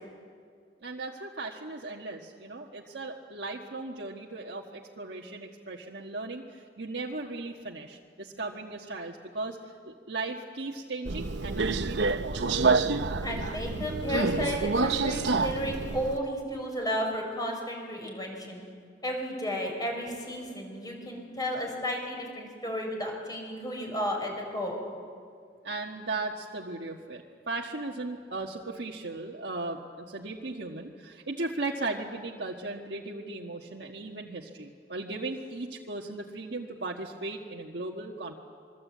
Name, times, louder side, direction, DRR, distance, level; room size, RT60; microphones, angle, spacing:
voice 1, 0.8-12.4 25.6-38.3, right 2 dB, 70° right, -1 dB, 1.5 m, -37 dB
Subway metro underground, 11.0-16.2, right 3 dB, 85° right, 0.9 m, -28 dB
voice 2, 13.2-18.6 19.0-24.8, equal, 20° left, 1 dB, 6.2 m, -33 dB
26.0 x 23.5 x 8.5 m, 2.1 s
head